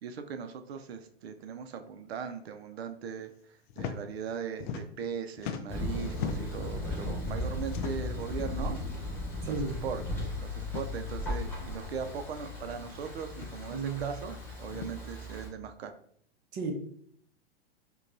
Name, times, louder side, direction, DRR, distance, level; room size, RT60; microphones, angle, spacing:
voice 1, 0.0-8.8 9.4-9.6 9.8-15.9, right 6 dB, 75° right, 8 dB, 0.5 m, -39 dB
sound 1, 3.7-4.0 4.3-5.1 5.4-6.6 7.6-8.2 9.1-9.3 9.6-9.7 10.6-10.9 12.0-12.1 13.3-13.6 14.7-14.9, left 7 dB, 50° left, 0.4 m, -38 dB
Thunder, 5.7-15.5, left 2 dB, 5° left, 1.5 m, -36 dB
voice 2, 9.4-9.8 13.7-14.1 16.5-16.8, right 4 dB, 30° right, 3 dB, 0.7 m, -33 dB
5.0 x 2.3 x 2.6 m, 0.65 s
hypercardioid pair, 125°, 32 cm